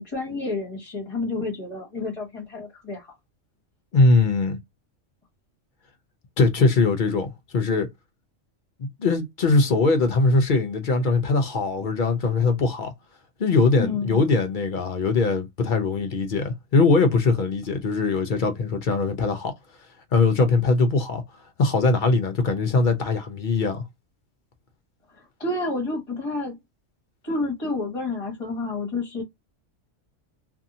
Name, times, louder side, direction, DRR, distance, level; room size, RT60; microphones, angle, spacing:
voice 1, 0.0-3.1 13.8-14.3 25.1-26.5 27.2-29.2, left 3 dB, 25° left, 1.2 m, -30 dB
voice 2, 3.9-4.6 6.4-7.9 8.8-12.9 13.4-19.5 20.1-21.2 21.6-23.9, left 3 dB, 55° left, 0.6 m, -21 dB
2.7 x 2.6 x 2.5 m
omnidirectional pair, 1.3 m